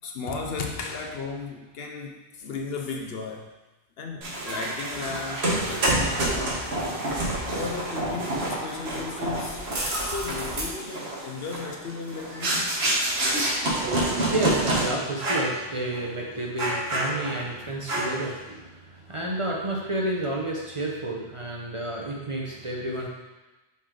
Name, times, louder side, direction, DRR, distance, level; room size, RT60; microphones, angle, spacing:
voice 1, 0.0-3.5 4.0-6.6 7.5-12.8, left 4 dB, 70° left, 2 dB, 0.9 m, -35 dB
sound 1, 4.2-14.9 15.2-15.5 15.9-16.1 16.6-17.5 17.9-18.3, right 1 dB, 70° right, 1.5 m, -28 dB
voice 2, 13.4-23.1, right 1 dB, 30° right, -2 dB, 0.8 m, -30 dB
5.5 x 4.9 x 3.8 m, 1.1 s
omnidirectional pair, 1.1 m